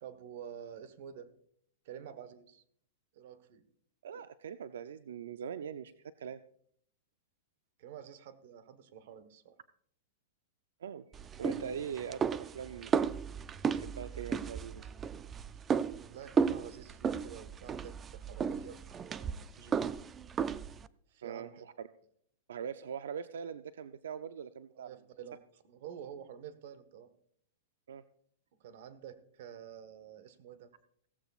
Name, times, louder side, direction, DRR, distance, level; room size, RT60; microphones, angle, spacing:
voice 1, 0.0-1.3 1.8-2.6 3.1-3.6 7.8-9.6 16.1-20.0 21.1-21.6 24.7-25.4 25.6-27.1 28.6-30.7, right 9 dB, 60° right, 12 dB, 1.3 m, -49 dB
voice 2, 4.0-5.9 6.2-6.4 10.8-11.1 11.4-13.1 13.7-14.8 21.2-21.9 22.5-24.9 27.9-28.0, right 7 dB, 90° right, 11 dB, 0.5 m, -42 dB
sound 1, 11.1-20.9, right 6 dB, 20° right, 0.4 m, -34 dB
16.5 x 14.5 x 2.4 m, 0.65 s
supercardioid pair, 150°, 0 cm